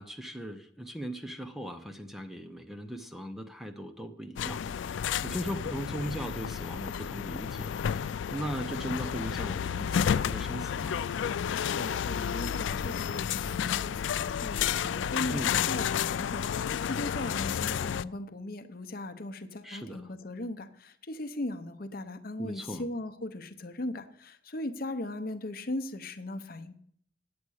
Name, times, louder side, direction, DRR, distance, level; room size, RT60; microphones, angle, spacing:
voice 1, 0.0-11.0 15.3-15.5 19.6-20.1 22.4-22.8, equal, ahead, 7 dB, 0.7 m, -38 dB
sound 1, 4.4-18.0, left 8 dB, 80° left, 0.3 m, -31 dB
voice 2, 11.6-26.8, left 1 dB, 50° left, 10 dB, 0.8 m, -38 dB
9.6 x 8.6 x 6.4 m, 0.65 s
head